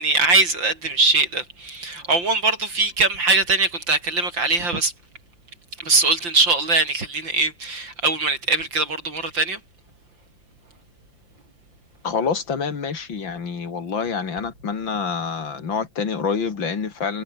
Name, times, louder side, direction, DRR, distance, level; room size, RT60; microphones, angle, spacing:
voice 1, 0.0-4.9 5.8-9.6, right 3 dB, 75° right, 7.1 m, -21 dB
voice 2, 12.0-17.2, left 5 dB, 90° left, 3.4 m, -27 dB
omnidirectional pair, 2.0 m